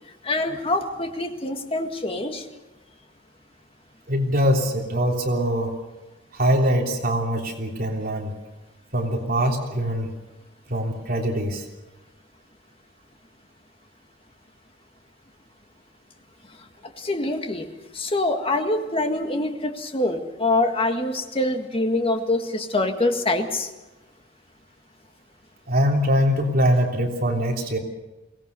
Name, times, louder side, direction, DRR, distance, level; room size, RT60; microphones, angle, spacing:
voice 1, 0.2-2.5 17.0-17.7 17.9-23.7, left 2 dB, 30° left, 5 dB, 1.9 m, -25 dB
voice 2, 4.1-5.7 6.3-8.3 8.9-10.1 10.7-11.7 25.7-27.8, equal, 50° right, 1 dB, 3.3 m, -23 dB
23.5 x 18.5 x 6.9 m, 1.1 s
head